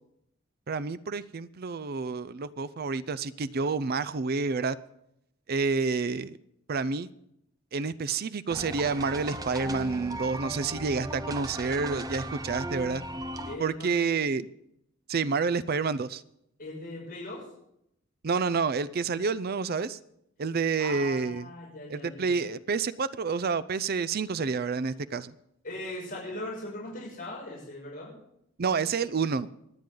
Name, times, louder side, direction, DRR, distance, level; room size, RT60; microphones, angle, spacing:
voice 1, 0.7-4.8 5.5-6.4 6.7-7.1 7.7-13.0 13.6-14.5 15.1-16.2 18.2-20.0 20.4-21.5 21.9-25.3 28.6-29.5, right 4 dB, 50° right, 16 dB, 0.5 m, -29 dB
sound 1, 8.5-13.6, right 1 dB, 20° right, 0.8 m, -37 dB
voice 2, 13.5-14.1 16.6-17.5 20.8-22.4 25.6-28.2, left 1 dB, 45° left, -4 dB, 6.1 m, -39 dB
27.5 x 9.2 x 3.9 m, 0.78 s
head